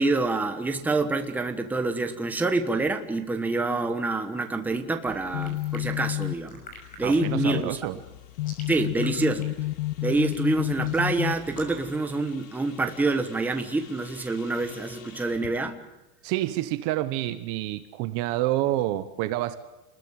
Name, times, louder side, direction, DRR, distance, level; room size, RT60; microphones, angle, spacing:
voice 1, 0.0-6.6 7.0-7.7 8.7-9.5 10.0-15.8, right 3 dB, 5° right, 5 dB, 1.2 m, -26 dB
sound 1, 5.1-12.0, left 19 dB, 75° left, 0.9 m, -31 dB
sound 2, 5.4-11.9, left 1 dB, 20° left, 6.2 m, -46 dB
sound 3, 6.8-15.6, left 6 dB, 60° left, 4.6 m, -51 dB
voice 2, 7.0-8.0 16.2-19.6, right 15 dB, 35° right, 11 dB, 1.0 m, -28 dB
28.0 x 21.0 x 7.7 m, 0.98 s
supercardioid pair, 170°, 45 cm